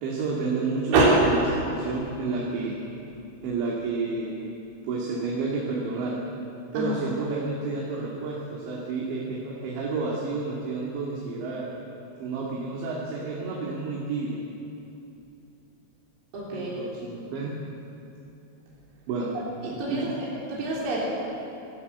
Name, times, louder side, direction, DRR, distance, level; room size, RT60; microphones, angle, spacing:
voice 1, 0.0-2.8 3.4-4.4 4.8-6.2 6.7-11.7 12.2-14.4 16.5-17.6 19.1-19.3 19.9-20.2, right 3 dB, 80° right, -4 dB, 4.7 m, -30 dB
voice 2, 16.3-16.8 19.6-21.1, right 2 dB, 55° right, -6 dB, 5.1 m, -25 dB
25.5 x 15.5 x 8.2 m, 2.8 s
omnidirectional pair, 5.1 m